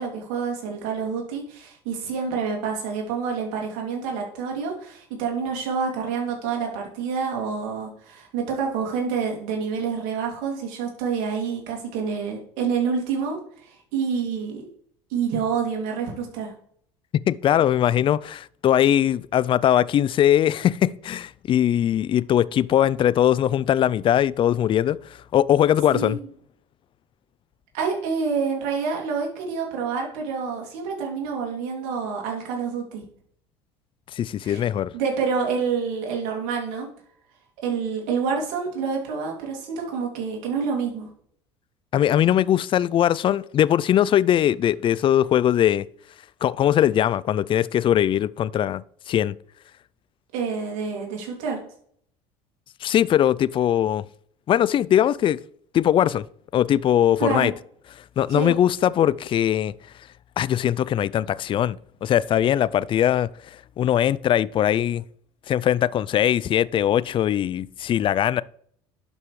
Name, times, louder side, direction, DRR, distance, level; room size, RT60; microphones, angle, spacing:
voice 1, 0.0-14.7 15.1-16.5 25.9-26.1 27.7-33.0 34.4-34.6 34.9-36.9 37.6-41.1 50.3-51.6 57.2-57.5 58.3-58.5, right 5 dB, 70° right, 2.6 m, -27 dB
voice 2, 17.3-26.2 34.1-34.9 41.9-45.9 46.4-49.3 52.8-54.0 54.5-55.4 55.7-56.3 56.5-57.5 58.2-59.7 60.4-63.3 63.8-65.0 65.5-68.4, left 11 dB, 40° left, 0.4 m, -21 dB
11.5 x 5.4 x 3.2 m
hypercardioid pair, 80°, 14 cm